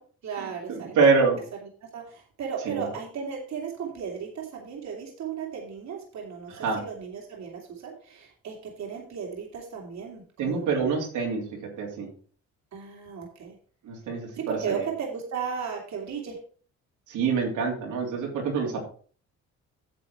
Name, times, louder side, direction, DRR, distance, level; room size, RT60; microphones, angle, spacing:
voice 1, 0.2-1.2 1.6-10.8 12.7-13.6 14.4-16.4, right 6 dB, 65° right, -1 dB, 2.9 m, -35 dB
voice 2, 0.9-1.4 2.7-2.8 6.6-6.8 10.4-11.4 11.8-12.1 13.8-14.7 17.1-18.8, right 5 dB, 85° right, -1 dB, 3.3 m, -25 dB
9.3 x 7.1 x 4.6 m, 0.43 s
cardioid pair, 90°, 30 cm